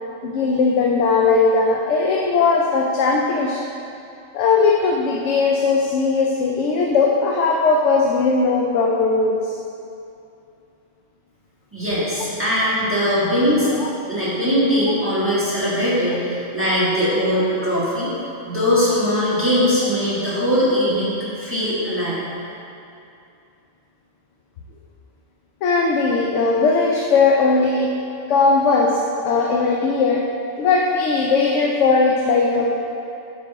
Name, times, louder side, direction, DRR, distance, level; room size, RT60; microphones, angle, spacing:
voice 1, 0.2-3.6 4.3-9.5 13.8-13.9 25.6-27.9 28.3-30.2 30.6-32.7, left 4 dB, 75° left, -1 dB, 0.9 m, -18 dB
voice 2, 11.7-13.7 14.1-18.1 18.4-22.2, equal, 10° right, -10 dB, 1.5 m, -20 dB
6.5 x 5.3 x 4.0 m, 2.6 s
omnidirectional pair, 1.3 m